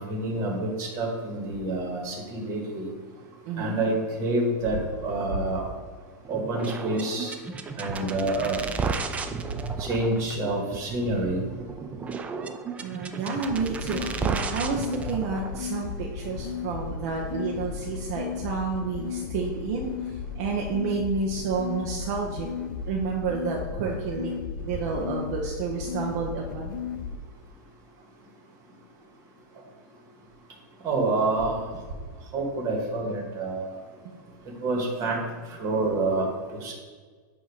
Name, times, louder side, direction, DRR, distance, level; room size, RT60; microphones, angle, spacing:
voice 1, 0.0-2.9 3.6-4.8 5.0-5.6 6.3-7.3 7.8-8.6 9.9-11.4 14.0-14.1 30.8-31.7 32.3-33.7 34.6-35.2 35.6-36.3 36.6-36.7, right 2 dB, 30° right, 0 dB, 1.7 m, -27 dB
voice 2, 3.5-3.8 12.8-22.5 22.9-24.3 24.6-26.7, right 4 dB, 55° right, -1 dB, 0.8 m, -30 dB
sound 1, 6.3-15.6, right 5 dB, 15° right, 0.3 m, -33 dB
sound 2, 13.5-27.2, left 6 dB, 70° left, 0.6 m, -35 dB
8.1 x 2.8 x 4.8 m, 1.5 s
supercardioid pair, 145°, 10 cm